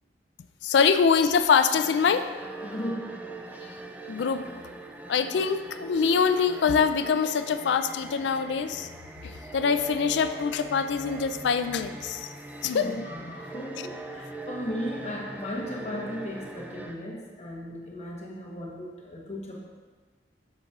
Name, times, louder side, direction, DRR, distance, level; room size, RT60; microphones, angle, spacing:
voice 1, 0.6-2.3 4.1-4.4 5.1-8.9 9.2-12.3 12.6-13.0, left 6 dB, 80° left, 10 dB, 0.3 m, -24 dB
sound 1, 1.7-17.0, right 2 dB, 10° right, 0.3 m, -41 dB
voice 2, 2.6-3.2 12.7-19.6, equal, 35° left, -2 dB, 1.0 m, -36 dB
7.6 x 6.8 x 2.4 m, 1.4 s
head